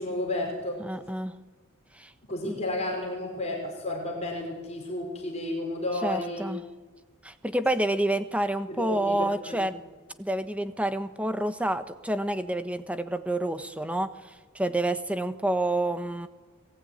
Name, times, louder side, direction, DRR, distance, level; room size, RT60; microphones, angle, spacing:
voice 1, 0.0-0.8 2.3-6.5 8.7-9.7, left 1 dB, 30° left, 0 dB, 5.1 m, -32 dB
voice 2, 0.8-1.4 1.9-2.1 2.4-2.6 6.0-6.6 7.2-9.8 10.2-16.3, right 1 dB, 5° right, 10 dB, 1.1 m, -28 dB
29.0 x 20.5 x 9.4 m, 1.3 s
head